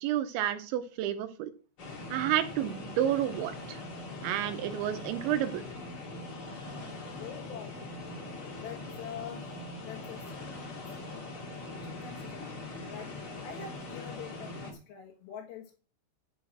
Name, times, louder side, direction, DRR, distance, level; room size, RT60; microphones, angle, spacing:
voice 1, 0.0-1.5 2.1-3.8 4.2-5.6, right 11 dB, 80° right, 9 dB, 2.8 m, -30 dB
sound 1, 1.8-14.7, left 2 dB, 40° left, 2.1 m, -42 dB
voice 2, 7.1-7.8 8.5-9.6 9.8-10.4 11.8-12.5 12.9-13.1 13.4-15.7, left 8 dB, 65° left, -1 dB, 3.4 m, -45 dB
11.5 x 6.2 x 6.2 m, 0.37 s
omnidirectional pair, 5.6 m